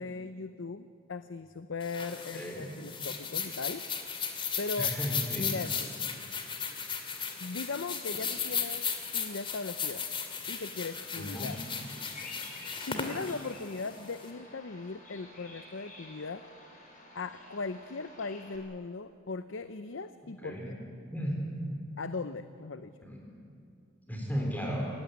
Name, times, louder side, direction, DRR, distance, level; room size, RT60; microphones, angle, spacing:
voice 1, 0.0-3.9 4.6-4.9 5.4-5.7 7.4-8.9 9.1-10.0 10.5-11.6 12.8-16.5 17.1-20.8 22.0-22.9, left 4 dB, 70° left, 11 dB, 0.7 m, -38 dB
sound 1, 1.8-14.3, left 6 dB, 25° left, 2.4 m, -36 dB
voice 2, 2.3-2.8 4.8-5.5 11.2-11.5 20.4-20.8 21.1-21.4 23.1-23.2 24.1-24.9, equal, 10° left, -1 dB, 4.2 m, -34 dB
Bird vocalization bird call bird song, 11.2-18.6, left 2 dB, 40° left, 5.1 m, -50 dB
28.0 x 16.0 x 9.6 m, 2.5 s
head